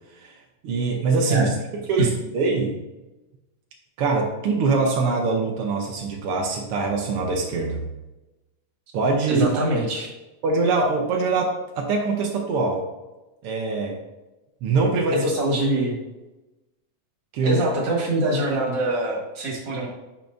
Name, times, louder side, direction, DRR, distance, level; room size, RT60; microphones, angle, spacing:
voice 1, 0.6-1.6 1.9-2.8 4.0-7.9 8.9-9.5 10.4-12.8 13.4-14.0 14.6-15.3 17.3-17.6, right 3 dB, 85° right, 0 dB, 1.2 m, -23 dB
voice 2, 9.3-10.1 15.1-16.0 17.4-19.9, right 1 dB, 45° right, -2 dB, 1.8 m, -24 dB
9.0 x 5.8 x 2.6 m, 1.1 s
omnidirectional pair, 3.7 m